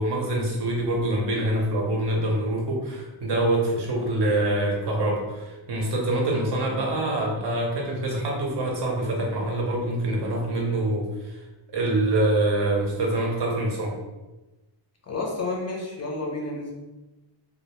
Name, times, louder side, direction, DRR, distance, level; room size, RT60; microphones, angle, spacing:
voice 1, 0.0-11.4 11.7-14.0, right 1 dB, 60° right, -1 dB, 0.7 m, -25 dB
voice 2, 15.0-16.7, left 2 dB, 35° left, -1 dB, 0.4 m, -30 dB
2.2 x 2.1 x 2.9 m, 1.1 s
wide cardioid pair, 125°, 46 cm